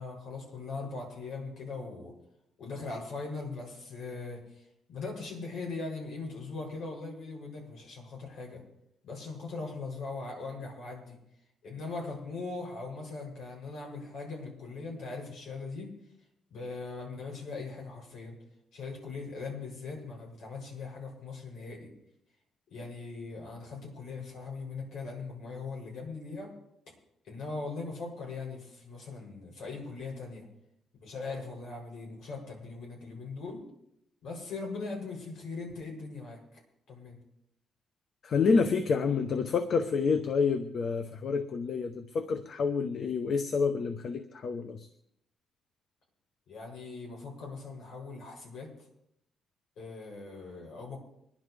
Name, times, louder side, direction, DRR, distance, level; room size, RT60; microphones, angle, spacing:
voice 1, 0.0-2.1 2.6-8.6 9.0-11.2 11.6-15.9 16.5-18.4 18.7-21.9 22.7-26.5 27.2-30.4 31.0-33.6 34.2-36.6 36.9-37.2 46.5-48.7 49.8-51.0, left 3 dB, 75° left, 0 dB, 7.7 m, -40 dB
voice 2, 38.2-44.9, left 5 dB, 55° left, 8 dB, 0.9 m, -28 dB
25.5 x 11.0 x 3.5 m, 0.78 s
cardioid pair, 90°, 0 cm